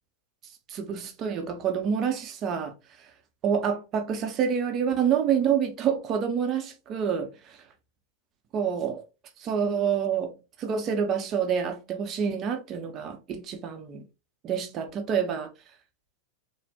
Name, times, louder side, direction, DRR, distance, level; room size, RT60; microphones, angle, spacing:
voice 1, 0.7-3.1 3.4-7.3 8.5-9.0 9.4-14.0 14.4-15.5, right 7 dB, 30° right, 0.7 m, -27 dB
4.1 x 3.2 x 2.8 m
figure-of-eight pair, 90°, 0 cm